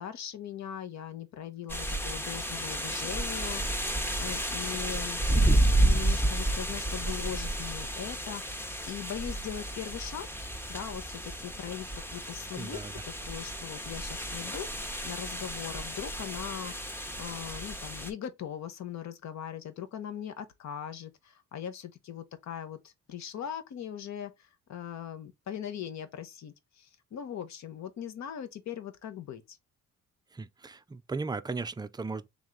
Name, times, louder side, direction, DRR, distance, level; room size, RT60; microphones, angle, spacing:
voice 1, 0.0-5.2 5.6-10.3 10.7-29.6, left 9 dB, 65° left, 1.0 m, -40 dB
sound 1, 1.7-18.1, right 1 dB, 5° left, 0.8 m, -31 dB
voice 2, 12.6-13.0 30.3-32.3, right 4 dB, 15° right, 0.4 m, -36 dB
3.6 x 3.1 x 3.8 m
cardioid pair, 90°, 30 cm